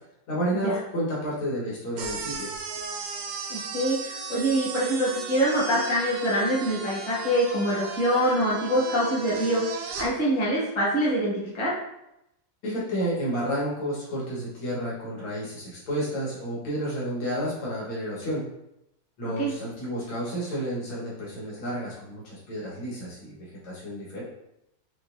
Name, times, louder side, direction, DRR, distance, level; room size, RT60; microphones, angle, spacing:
voice 1, 0.3-2.5 12.6-18.4 19.2-24.2, equal, 90° left, -6 dB, 2.4 m, -31 dB
sound 1, 2.0-10.1, right 5 dB, 90° right, 1.5 m, -36 dB
voice 2, 3.5-9.6 10.0-11.7 19.4-19.5, right 1 dB, 15° left, -7 dB, 1.1 m, -25 dB
6.2 x 2.6 x 2.6 m, 0.83 s
omnidirectional pair, 2.2 m